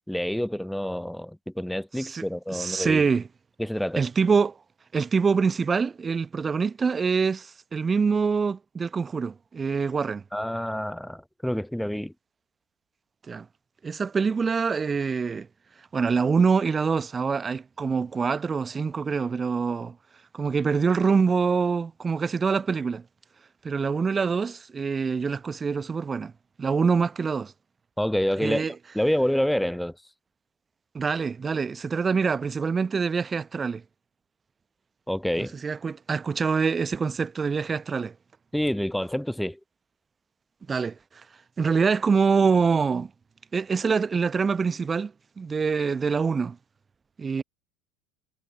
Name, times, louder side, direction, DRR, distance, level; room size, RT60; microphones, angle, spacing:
voice 1, 0.1-3.1 3.6-4.1 10.3-12.1 28.0-29.9 35.1-35.5 38.5-39.6, equal, ahead, 0.8 m, -28 dB
voice 2, 2.5-3.3 4.0-4.6 4.9-10.2 13.3-13.5 13.8-15.5 15.9-19.9 20.3-23.0 23.6-26.3 26.6-27.5 28.4-28.7 30.9-33.8 35.4-38.1 40.7-41.0 41.6-43.1 43.5-45.1 45.4-46.6 47.2-47.4, right 5 dB, 20° right, 1.0 m, -25 dB
figure-of-eight pair, 75°, 0 cm